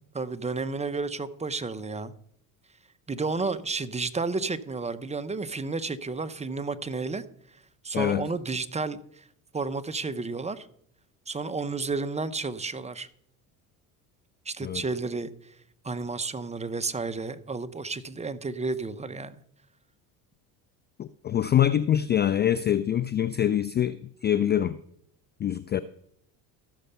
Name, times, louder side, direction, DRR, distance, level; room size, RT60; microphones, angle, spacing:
voice 1, 0.1-2.1 3.1-7.2 7.8-9.2 9.5-10.7 11.3-13.1 14.5-15.3 15.8-19.4, right 4 dB, 15° right, 0.7 m, -31 dB
voice 2, 7.9-8.3 14.6-14.8 21.0-24.8 25.4-25.8, left 10 dB, 25° left, 0.3 m, -25 dB
13.5 x 6.5 x 5.7 m
hypercardioid pair, 80°, 45 cm